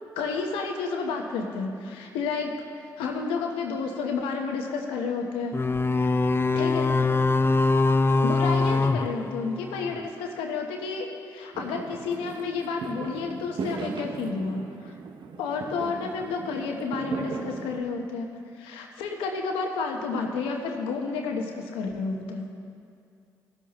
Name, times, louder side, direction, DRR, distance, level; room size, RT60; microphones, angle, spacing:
voice 1, 0.2-2.5 3.0-5.6 5.8-6.1 6.5-7.0 7.4-7.5 8.2-14.9 15.4-18.3 18.5-22.5, left 4 dB, 85° left, 2 dB, 1.1 m, -31 dB
sound 1, 5.5-10.0, left 3 dB, 25° left, 0.4 m, -23 dB
Fireworks, 11.5-17.8, right 5 dB, 60° right, 0.7 m, -37 dB
16.5 x 7.7 x 3.0 m, 2.3 s
hypercardioid pair, 45°, 9 cm